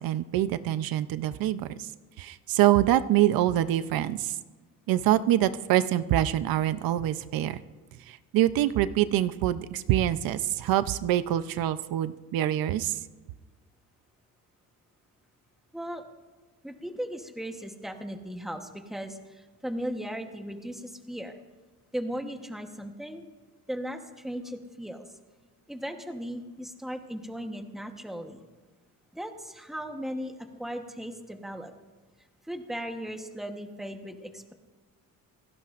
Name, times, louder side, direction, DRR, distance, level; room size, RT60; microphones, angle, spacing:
voice 1, 0.0-1.9 2.2-4.4 4.9-7.6 8.1-13.0, right 13 dB, 85° right, 13 dB, 0.7 m, -25 dB
voice 2, 16.6-21.4 21.9-23.2 23.7-25.1 25.7-28.4 29.1-31.7 32.5-34.5, equal, ahead, 4 dB, 1.1 m, -37 dB
27.0 x 18.0 x 2.5 m, 1.3 s
cardioid pair, 165°, 34 cm